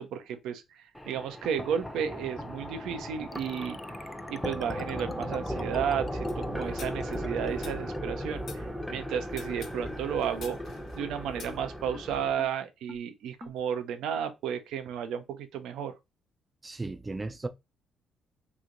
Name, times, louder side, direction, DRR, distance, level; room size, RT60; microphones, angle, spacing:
voice 1, 0.0-3.8 4.3-10.6 11.0-15.9, right 8 dB, 75° right, 0.6 m, -33 dB
sound 1, 0.9-12.3, equal, 5° left, 0.8 m, -37 dB
sound 2, 3.3-8.5 8.8-8.9 9.1-9.2 9.5-9.6 9.9-10.0 10.2-10.3 10.6-10.7 11.0-11.1 11.5-11.6 11.9-12.0 12.4-12.5 12.9-13.0 13.4-13.5, left 3 dB, 30° left, 0.4 m, -44 dB
sound 3, 6.2-8.6 9.3-12.2, left 5 dB, 65° left, 0.9 m, -49 dB
voice 2, 16.6-17.5, right 3 dB, 25° right, 0.5 m, -35 dB
3.0 x 2.4 x 3.8 m
hypercardioid pair, 50°, 0 cm